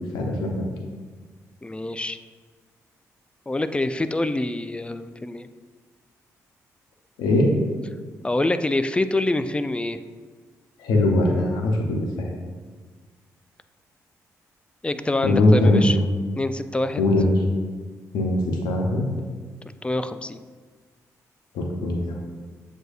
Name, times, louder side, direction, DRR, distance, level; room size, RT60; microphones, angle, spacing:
voice 1, 0.1-0.5 7.2-7.5 10.8-12.3 15.2-15.9 17.0-17.3 18.1-19.1 21.5-22.2, left 2 dB, 85° left, 1 dB, 0.6 m, -20 dB
voice 2, 1.6-2.2 3.5-5.5 8.2-10.0 14.8-16.0 16.4-17.0 19.8-20.4, left 2 dB, 15° left, 11 dB, 0.3 m, -25 dB
7.6 x 2.7 x 2.4 m, 1.5 s
supercardioid pair, 45°, 7 cm